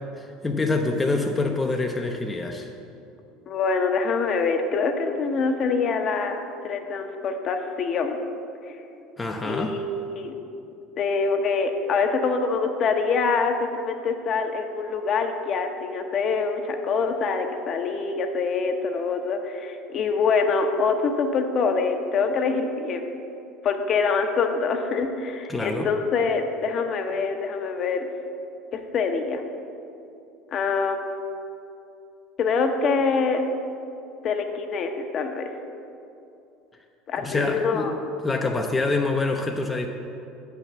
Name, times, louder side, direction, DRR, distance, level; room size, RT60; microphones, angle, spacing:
voice 1, 0.2-2.7 9.0-9.8 25.5-25.9 37.2-37.9 38.2-39.9, left 3 dB, 15° left, 2 dB, 0.6 m, -26 dB
voice 2, 3.5-8.2 8.7-8.8 9.4-10.3 11.0-23.1 23.6-28.1 28.7-29.4 30.5-31.0 32.4-33.4 34.2-35.5 37.1-37.9, left 4 dB, 45° left, 5 dB, 0.8 m, -25 dB
7.0 x 5.8 x 7.1 m, 2.7 s
supercardioid pair, 100°, 0 cm